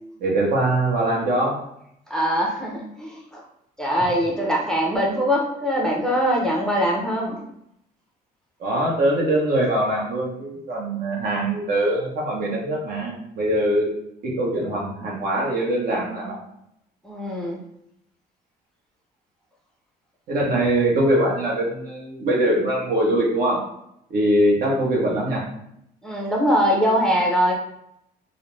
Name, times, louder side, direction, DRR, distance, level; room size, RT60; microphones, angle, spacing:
voice 1, 0.2-1.6 8.6-13.9 14.2-16.4 20.3-23.6 24.1-25.4, right 1 dB, 60° right, -2 dB, 0.9 m, -22 dB
voice 2, 2.1-3.4 3.8-7.4 17.0-17.6 26.0-27.5, equal, 5° left, -3 dB, 0.5 m, -22 dB
2.4 x 2.1 x 3.1 m, 0.76 s
cardioid pair, 110°, 17 cm